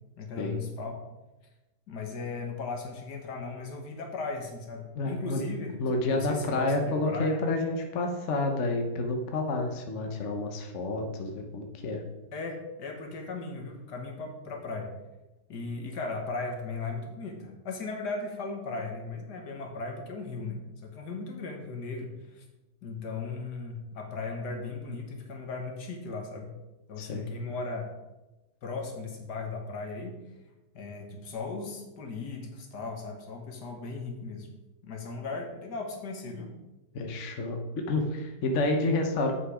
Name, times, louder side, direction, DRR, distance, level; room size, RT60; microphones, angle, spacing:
voice 1, 0.2-1.0 1.9-5.8 6.1-7.4 12.3-14.9 15.5-22.4 22.8-26.5 26.9-27.9 28.6-30.2 30.7-34.5 34.8-36.6, left 3 dB, 70° left, 3 dB, 1.8 m, -37 dB
voice 2, 5.0-5.4 5.8-12.0 27.0-27.3 36.9-39.3, left 2 dB, 50° left, 4 dB, 1.1 m, -29 dB
7.9 x 5.6 x 4.9 m, 1.0 s
omnidirectional pair, 1.8 m